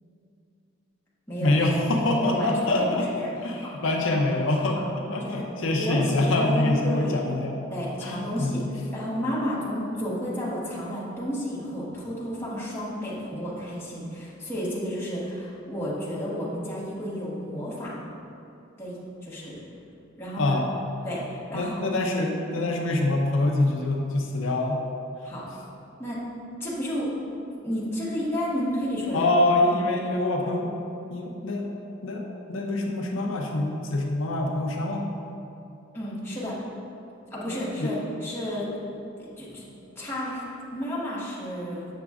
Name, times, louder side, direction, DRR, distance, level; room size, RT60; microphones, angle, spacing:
voice 1, 1.4-3.1 3.4-4.8 5.1-7.6 8.0-8.7 20.4-20.7 21.5-24.8 29.1-30.7 31.1-31.7 32.0-35.1 37.5-37.9, left 2 dB, 85° left, 0 dB, 0.6 m, -25 dB
voice 2, 2.2-3.3 3.5-3.7 4.1-4.2 4.7-4.8 5.2-5.4 5.7-7.2 7.7-8.6 8.9-17.9 18.8-19.5 20.2-20.6 21.0-21.9 25.2-25.5 26.0-26.2 26.6-27.1 27.6-29.3 35.9-36.6 37.3-38.7 39.2-39.6 39.9-40.4 40.7-41.9, equal, 15° left, -8 dB, 1.4 m, -31 dB
8.0 x 6.0 x 2.4 m, 2.8 s
head